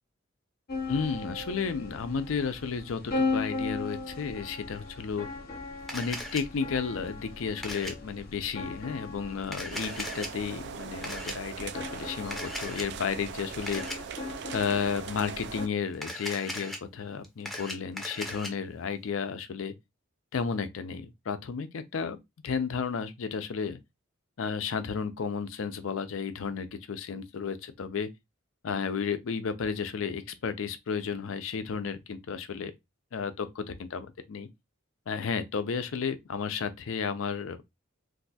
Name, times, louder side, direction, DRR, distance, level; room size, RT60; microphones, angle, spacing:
sound 1, 0.7-15.7, left 3 dB, 45° left, 0.8 m, -38 dB
voice 1, 0.9-5.3 5.9-13.8 14.5-19.7 20.3-22.2 22.4-23.8 24.4-28.1 28.6-32.7 33.1-34.5 35.1-37.6, left 6 dB, 75° left, 0.5 m, -33 dB
Camera, 5.9-6.4 7.6-7.9 9.4-10.3 11.0-11.3 12.3-12.9 13.7-14.0 15.9-16.8 17.2-18.5, left 1 dB, ahead, 0.6 m, -37 dB
sound 2, 9.7-15.7, right 7 dB, 55° right, 0.3 m, -41 dB
2.6 x 2.3 x 4.0 m
head